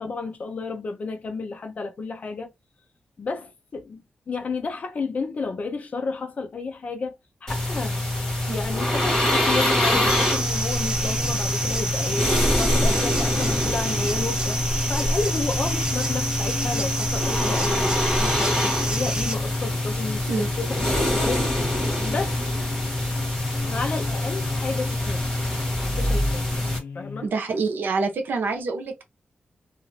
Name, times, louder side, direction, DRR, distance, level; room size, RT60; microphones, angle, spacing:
voice 1, 0.0-2.5 3.2-7.1 7.4-8.0 8.5-12.3 12.6-20.7 21.0-21.5 22.0-22.4 23.7-25.2 25.9-26.4 26.9-27.3, left 4 dB, 45° left, 0.6 m, -32 dB
sound 1, 7.5-26.8, left 1 dB, 15° left, 1.3 m, -25 dB
sound 2, 10.1-19.3, right 1 dB, 20° right, 0.5 m, -28 dB
sound 3, 11.0-27.3, left 5 dB, 85° left, 0.6 m, -38 dB
voice 2, 27.2-29.0, right 4 dB, 80° right, 0.8 m, -26 dB
2.5 x 2.4 x 3.2 m
wide cardioid pair, 155°, 3 cm